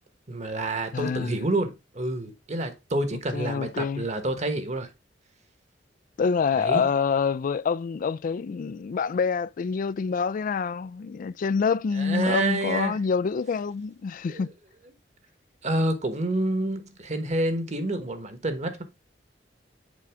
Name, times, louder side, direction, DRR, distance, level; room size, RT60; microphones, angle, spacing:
voice 1, 0.3-4.9 6.6-6.8 12.0-13.0 14.3-14.4 15.6-18.8, right 1 dB, 40° right, 1.2 m, -28 dB
voice 2, 0.9-1.5 3.3-4.1 6.2-14.5, left 5 dB, 45° left, 0.3 m, -26 dB
7.5 x 4.6 x 3.4 m
head